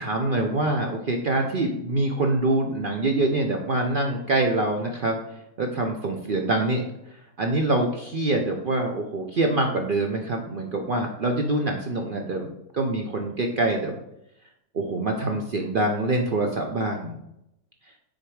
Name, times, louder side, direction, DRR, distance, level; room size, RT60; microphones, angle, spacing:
voice 1, 0.0-12.5 12.7-13.9 14.7-17.2, right 2 dB, 55° right, 3 dB, 0.6 m, -25 dB
6.5 x 4.1 x 4.7 m, 0.82 s
omnidirectional pair, 1.6 m